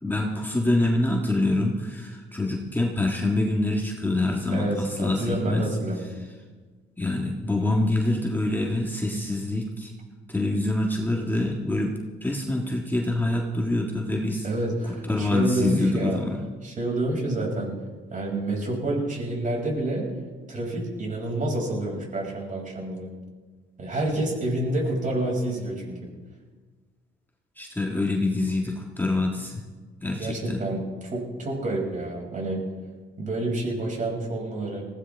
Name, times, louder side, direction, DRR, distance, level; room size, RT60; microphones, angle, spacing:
voice 1, 0.0-5.7 7.0-9.9 10.3-11.9 12.2-14.5 14.8-16.4 27.6-29.6 30.0-30.6, left 2 dB, 10° left, -1 dB, 1.7 m, -25 dB
voice 2, 4.5-6.0 14.4-16.2 16.6-17.8 18.1-20.1 20.5-23.1 23.8-26.0 29.3-29.4 30.1-32.7 33.2-34.8, right 1 dB, 40° right, -1 dB, 6.2 m, -28 dB
20.0 x 16.0 x 3.5 m, 1.4 s
cardioid pair, 90°, 20 cm